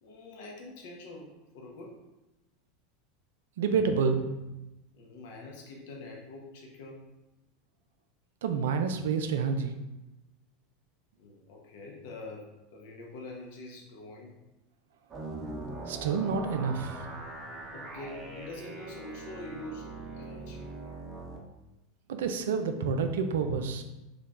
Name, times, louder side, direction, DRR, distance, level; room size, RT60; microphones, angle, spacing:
voice 1, 0.0-1.9 4.9-7.0 11.2-14.4 17.7-20.7, left 2 dB, 65° left, -2 dB, 0.6 m, -45 dB
voice 2, 3.6-4.3 8.4-9.7 15.9-17.1 22.1-23.8, right 5 dB, 70° right, 7 dB, 0.3 m, -28 dB
sound 1, 15.1-21.4, right 2 dB, 25° right, 0.7 m, -41 dB
2.8 x 2.2 x 3.3 m, 1.0 s
hypercardioid pair, 85°, 0 cm